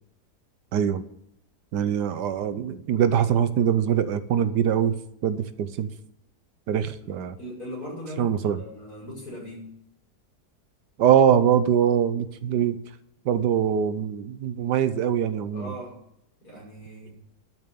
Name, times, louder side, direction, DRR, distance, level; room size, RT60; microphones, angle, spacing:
voice 1, 0.7-1.0 1.7-4.9 5.2-5.9 6.7-7.4 8.2-8.6 11.0-12.8 13.2-15.7, right 9 dB, 85° right, 13 dB, 1.4 m, -23 dB
voice 2, 7.4-9.7 15.5-16.0 16.4-17.2, equal, 65° left, -3 dB, 6.7 m, -39 dB
12.0 x 7.0 x 8.4 m, 0.76 s
omnidirectional pair, 1.8 m